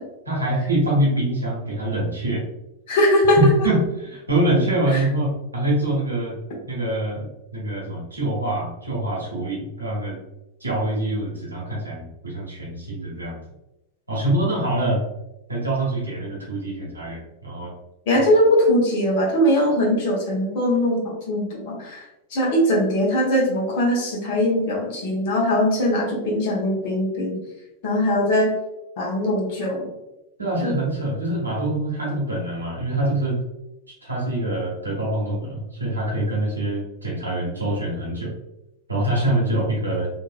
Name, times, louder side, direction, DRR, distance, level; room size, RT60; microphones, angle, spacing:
voice 1, 0.3-2.4 3.4-6.4 6.6-10.2 10.6-13.4 14.1-15.0 15.5-17.7 30.4-33.4 34.0-38.3 38.9-40.1, right 1 dB, 80° right, -4 dB, 1.1 m, -24 dB
voice 2, 2.9-3.4 18.1-22.0 22.3-27.4 27.8-28.5 29.0-29.9 30.6-30.8, left 1 dB, 50° left, -2 dB, 1.0 m, -21 dB
2.9 x 2.6 x 2.5 m, 0.93 s
figure-of-eight pair, 90°, 0 cm